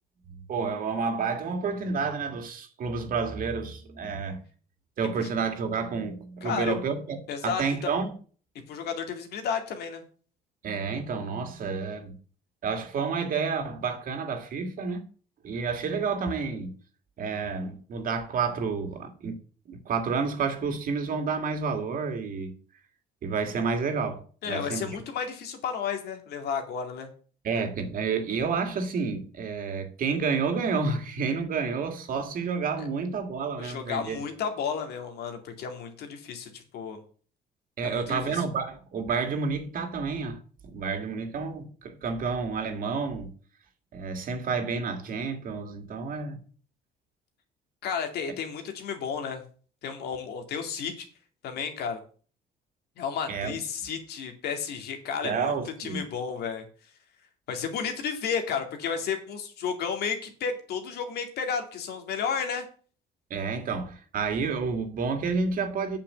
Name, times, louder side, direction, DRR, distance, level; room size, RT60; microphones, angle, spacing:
voice 1, 0.3-4.4 5.0-8.1 10.6-12.1 12.6-15.0 15.4-16.8 17.2-19.4 19.7-22.5 23.2-25.0 27.4-34.2 37.8-40.4 40.7-43.3 43.9-46.4 53.3-53.6 55.2-56.0 63.3-66.0, right 5 dB, 55° right, 2.3 m, -30 dB
voice 2, 6.4-6.7 7.3-7.9 8.7-10.0 24.4-27.1 32.8-32.9 33.6-37.0 37.8-38.4 47.8-49.4 49.8-51.1 51.4-52.0 53.0-55.5 55.8-56.6 57.5-62.6, left 6 dB, 70° left, 2.4 m, -32 dB
8.5 x 5.8 x 7.7 m
cardioid pair, 110°, 17 cm